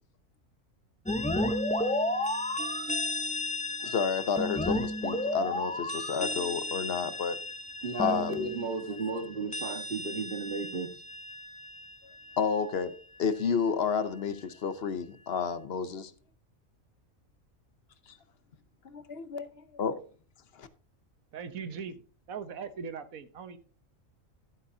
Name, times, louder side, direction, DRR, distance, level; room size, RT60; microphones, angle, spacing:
sound 1, 1.1-12.6, left 1 dB, 10° left, 0.4 m, -33 dB
voice 1, 3.8-7.4 8.0-8.5 12.4-12.9 13.2-16.1 18.8-20.0, left 6 dB, 55° left, 0.9 m, -31 dB
voice 2, 7.8-11.0, right 3 dB, 40° right, 1.6 m, -34 dB
voice 3, 21.3-22.0 22.3-23.6, right 6 dB, 90° right, 1.4 m, -39 dB
13.0 x 8.3 x 2.7 m
omnidirectional pair, 1.4 m